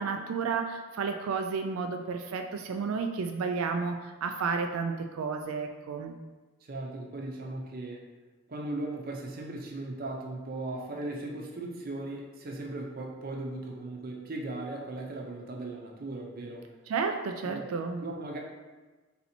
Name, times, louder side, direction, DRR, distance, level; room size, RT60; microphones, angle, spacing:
voice 1, 0.0-6.2 16.9-18.0, right 5 dB, 80° right, 5 dB, 0.4 m, -32 dB
voice 2, 6.6-8.0 8.5-16.7 17.4-17.7 18.0-18.4, right 2 dB, 45° right, 0 dB, 0.6 m, -37 dB
4.1 x 2.8 x 4.2 m, 1.3 s
head